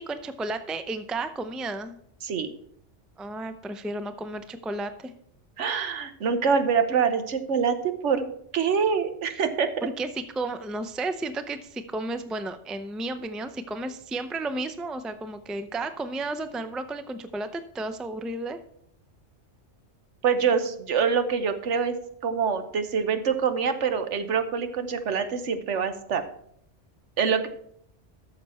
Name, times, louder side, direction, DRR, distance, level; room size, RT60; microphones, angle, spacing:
voice 1, 0.0-2.0 3.2-5.1 9.8-18.6, right 2 dB, ahead, 10 dB, 0.3 m, -33 dB
voice 2, 2.2-2.5 5.6-8.2 8.5-9.9 20.2-22.0 22.2-26.2 27.2-27.5, right 6 dB, 75° right, 9 dB, 1.2 m, -25 dB
13.0 x 6.7 x 4.2 m, 0.69 s
omnidirectional pair, 1.2 m